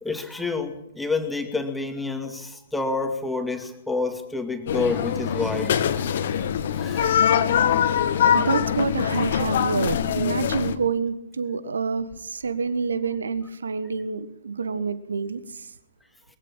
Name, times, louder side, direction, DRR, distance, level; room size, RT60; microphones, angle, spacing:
voice 1, 0.0-7.3, left 3 dB, 5° left, 4 dB, 2.4 m, -29 dB
sound 1, 4.7-10.8, left 8 dB, 50° left, 1.8 m, -23 dB
voice 2, 8.2-15.7, right 5 dB, 65° right, 14 dB, 1.5 m, -27 dB
22.5 x 16.0 x 8.9 m, 0.79 s
figure-of-eight pair, 115°, 0 cm